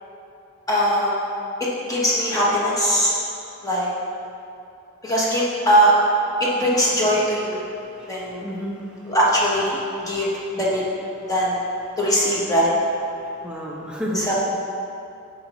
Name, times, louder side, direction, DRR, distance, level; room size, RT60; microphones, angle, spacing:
voice 1, 0.7-1.2 1.9-3.1 3.6-3.9 5.0-5.9 6.4-7.6 8.1-8.5 9.0-9.8 10.1-10.3 10.5-10.8 11.3-11.6 12.0-12.7 14.1-14.3, equal, 15° left, -6 dB, 1.2 m, -20 dB
voice 2, 7.8-9.1 10.1-10.2 13.4-14.3, equal, 5° right, -3 dB, 0.8 m, -32 dB
8.2 x 5.6 x 3.0 m, 2.7 s
head